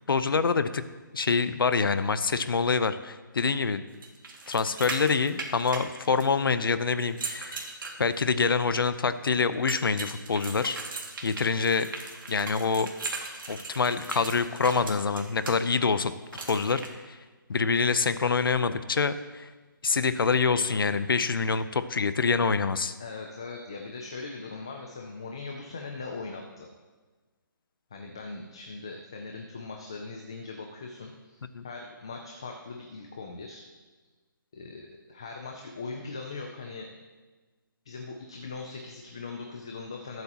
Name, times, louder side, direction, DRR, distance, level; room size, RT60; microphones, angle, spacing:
voice 1, 0.1-0.8 1.1-3.8 4.5-7.7 8.0-10.8 11.2-11.9 12.3-12.9 13.5-16.1 16.5-16.8 17.1-17.2 17.5-19.5 19.8-23.0 31.5-31.6, left 5 dB, 85° left, 12 dB, 0.8 m, -26 dB
sound 1, 4.0-6.5 7.0-8.5 9.7-15.5 16.3-16.9, right 3 dB, 70° right, 2.3 m, -38 dB
voice 2, 23.0-26.7 27.9-33.6 34.5-36.9 37.9-40.2, left 4 dB, 15° left, 2 dB, 0.3 m, -40 dB
20.5 x 7.8 x 3.0 m, 1.3 s
hypercardioid pair, 180°, 11 cm